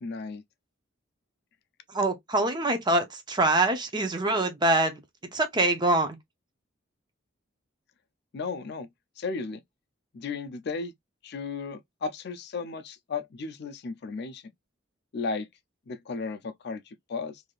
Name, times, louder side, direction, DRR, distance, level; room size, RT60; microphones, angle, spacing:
voice 1, 0.0-0.4 8.3-8.9 9.2-9.6 10.1-10.9 11.2-14.4 15.1-15.5 15.9-17.4, left 4 dB, 55° left, 0.4 m, -34 dB
voice 2, 1.9-5.0 5.3-6.2, right 2 dB, 20° right, 0.6 m, -24 dB
3.2 x 2.7 x 2.3 m
head